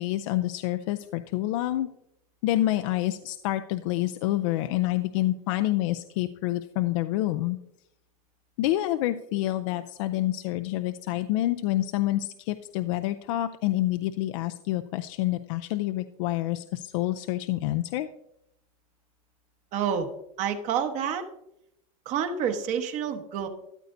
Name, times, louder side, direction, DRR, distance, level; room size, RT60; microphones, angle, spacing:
voice 1, 0.0-1.9 2.4-7.6 8.6-18.1, left 15 dB, 60° left, 9 dB, 0.5 m, -27 dB
voice 2, 19.7-20.1 20.4-21.2 22.0-23.5, right 8 dB, 40° right, 6 dB, 1.1 m, -28 dB
13.5 x 8.2 x 2.6 m, 0.79 s
supercardioid pair, 145°, 19 cm